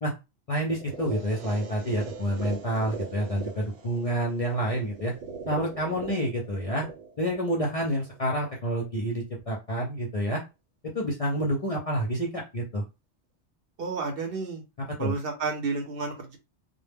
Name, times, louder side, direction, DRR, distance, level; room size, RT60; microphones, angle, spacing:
voice 1, 0.5-5.1 5.5-6.9 7.2-10.4 10.9-12.8 15.0-15.1, equal, 45° left, -2 dB, 0.5 m, -28 dB
sound 1, 0.7-8.7, right 5 dB, 85° right, 0.9 m, -41 dB
voice 2, 13.8-14.6 15.0-16.4, right 4 dB, 60° right, 3 dB, 0.8 m, -31 dB
2.1 x 2.0 x 3.3 m, 0.25 s
omnidirectional pair, 1.2 m